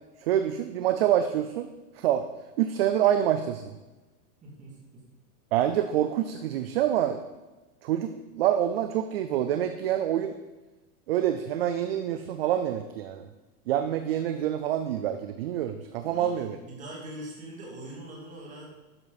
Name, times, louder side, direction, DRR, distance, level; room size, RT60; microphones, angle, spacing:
voice 1, 0.2-1.7 2.0-2.3 2.6-3.7 5.5-7.2 7.8-10.3 11.1-13.3 13.7-16.6, right 11 dB, 40° right, 9 dB, 0.5 m, -26 dB
voice 2, 4.4-5.0 16.1-18.6, right 1 dB, 15° right, -3 dB, 2.4 m, -42 dB
12.0 x 7.8 x 4.1 m, 1.1 s
supercardioid pair, 170°, 46 cm